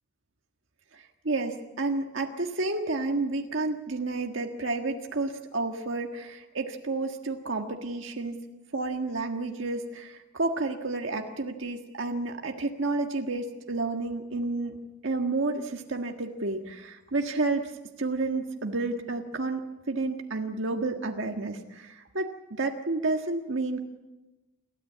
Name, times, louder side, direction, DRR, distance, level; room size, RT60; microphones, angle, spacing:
voice 1, 0.9-8.4 8.7-17.7 18.0-23.8, right 3 dB, 80° right, 3 dB, 1.6 m, -31 dB
28.5 x 14.0 x 8.5 m, 1.1 s
head